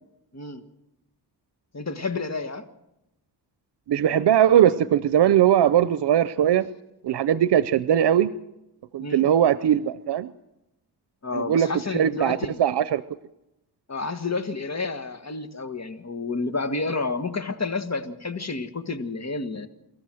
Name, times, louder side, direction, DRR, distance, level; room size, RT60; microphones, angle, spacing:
voice 1, 1.7-2.7 9.0-9.3 11.2-12.6 13.9-19.7, left 3 dB, 40° left, 8 dB, 1.7 m, -30 dB
voice 2, 3.9-6.7 7.0-8.3 8.9-10.3 11.3-13.0, right 10 dB, 90° right, 14 dB, 0.6 m, -20 dB
24.5 x 14.0 x 7.7 m, 0.92 s
cardioid pair, 70°, 40 cm